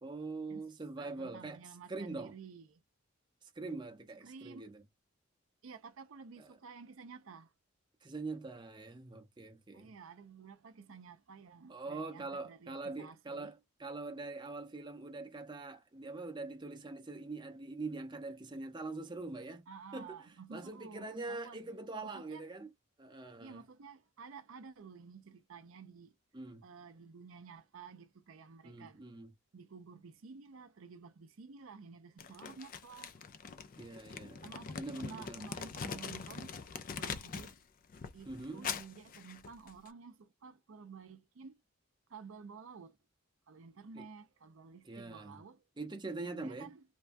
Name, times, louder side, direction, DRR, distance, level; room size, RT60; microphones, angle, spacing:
voice 1, 0.0-1.6 1.9-2.3 3.4-4.8 6.4-6.5 8.0-9.9 11.7-19.6 19.9-22.7 23.0-23.6 26.3-26.6 28.6-29.3 33.8-34.4 34.7-35.5 38.3-38.7 43.9-44.1 44.8-45.4 45.8-46.7, right 3 dB, 20° right, 0.6 m, -43 dB
voice 2, 1.0-2.8 4.2-4.7 5.6-7.5 9.7-13.5 19.7-21.6 22.0-22.4 23.4-26.1 26.6-29.0 29.5-33.1 34.4-36.5 37.0-37.6 38.1-41.6 42.1-43.0 43.5-45.6 46.2-46.8, right 5 dB, 75° right, 0.5 m, -52 dB
Crumpling crinkling, 32.2-37.6 37.9-39.9, left 6 dB, 40° left, 0.4 m, -43 dB
3.2 x 2.2 x 2.5 m
head